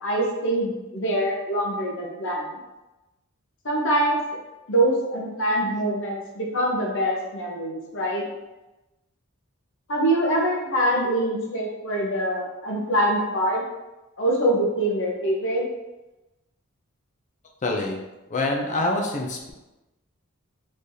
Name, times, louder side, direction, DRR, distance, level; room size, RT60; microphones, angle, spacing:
voice 1, 0.0-2.6 3.6-4.2 4.7-8.2 9.9-13.6 14.2-15.6, right 1 dB, 60° left, -2 dB, 0.9 m, -24 dB
voice 2, 17.6-18.0 18.3-19.5, left 2 dB, 35° left, 0 dB, 0.6 m, -25 dB
3.9 x 3.2 x 2.7 m, 1.0 s
head